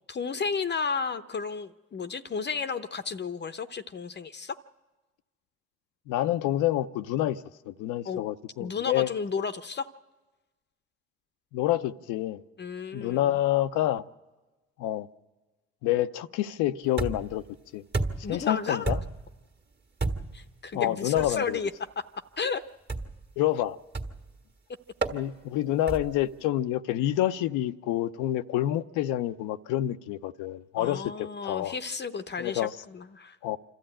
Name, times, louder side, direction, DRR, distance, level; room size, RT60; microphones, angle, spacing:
voice 1, 0.1-4.6 8.0-8.2 8.6-9.9 12.6-13.3 18.2-18.9 20.3-21.7 22.0-22.1 22.4-22.6 30.8-33.4, left 5 dB, 35° left, 0.7 m, -32 dB
voice 2, 6.1-9.1 11.5-12.4 12.9-14.0 14.8-15.1 15.8-17.4 17.7-17.8 18.3-19.0 20.7-21.6 23.4-23.8 25.1-31.7 32.4-32.7 33.4-33.6, left 13 dB, 80° left, 0.6 m, -28 dB
sound 1, 17.0-17.4 17.9-18.4 18.8-19.3 20.0-20.4 21.2-21.4 22.9-23.2 23.9-24.3 25.0-25.2 25.9-26.2, right 3 dB, 35° right, 1.7 m, -31 dB
26.5 x 13.0 x 8.8 m
supercardioid pair, 65°, 31 cm